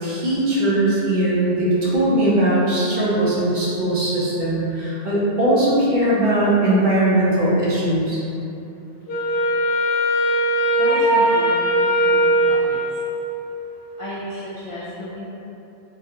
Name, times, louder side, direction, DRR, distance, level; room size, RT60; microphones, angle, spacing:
voice 1, 0.0-8.2, right 1 dB, 55° right, -7 dB, 0.7 m, -19 dB
Wind instrument woodwind instrument, 9.1-13.5, equal, 75° left, 0.8 m, -19 dB
voice 2, 10.8-12.8 14.0-15.2, equal, 60° left, -8 dB, 0.3 m, -32 dB
3.1 x 2.2 x 2.8 m, 2.8 s
omnidirectional pair, 1.1 m